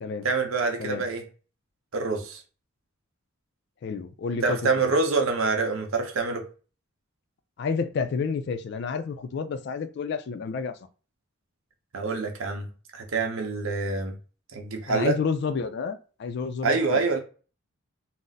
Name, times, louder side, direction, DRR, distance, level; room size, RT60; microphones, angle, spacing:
voice 1, 0.2-1.2 1.9-2.4 4.4-6.5 11.9-12.7 12.9-14.2 14.5-15.2 16.6-17.2, right 4 dB, 75° right, 0.7 m, -26 dB
voice 2, 3.8-4.6 7.6-10.8 14.9-17.1, left 5 dB, 50° left, 0.3 m, -30 dB
2.5 x 2.0 x 3.9 m
head